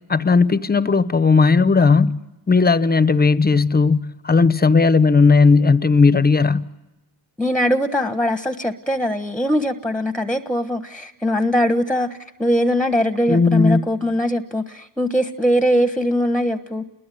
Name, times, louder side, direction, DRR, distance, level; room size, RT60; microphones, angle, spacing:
voice 1, 0.1-6.7 13.3-13.8, left 4 dB, 20° left, 0.9 m, -16 dB
voice 2, 7.4-16.8, equal, ahead, 1.3 m, -21 dB
30.0 x 21.5 x 9.3 m
cardioid pair, 105°, 46 cm